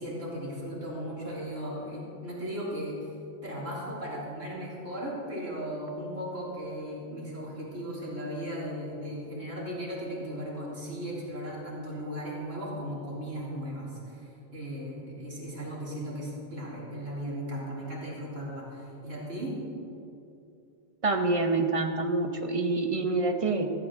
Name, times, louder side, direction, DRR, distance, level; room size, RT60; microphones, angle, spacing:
voice 1, 0.0-3.1 3.4-19.6, equal, 75° right, -6 dB, 3.9 m, -36 dB
voice 2, 21.0-23.7, right 3 dB, 30° right, 5 dB, 0.9 m, -27 dB
16.5 x 15.0 x 3.7 m, 2.7 s
omnidirectional pair, 1.3 m